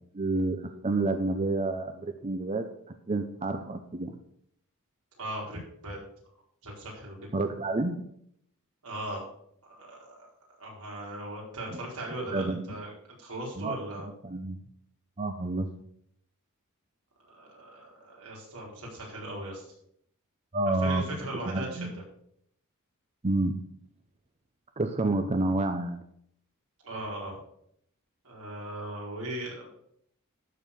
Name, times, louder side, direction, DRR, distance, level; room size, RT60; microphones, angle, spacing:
voice 1, 0.1-2.7 3.1-4.2 7.3-8.1 12.2-12.8 13.6-13.8 14.2-14.6 15.2-15.7 20.5-21.0 21.5-21.9 23.2-23.6 24.8-26.0, right 2 dB, 30° right, 7 dB, 0.7 m, -29 dB
voice 2, 5.2-6.0 6.6-7.2 8.8-9.2 9.6-10.3 10.6-12.9 13.2-14.1 17.2-19.6 20.8-21.9 26.8-27.4 28.2-29.7, right 1 dB, 85° right, -3 dB, 4.6 m, -38 dB
12.5 x 4.8 x 6.8 m, 0.70 s
head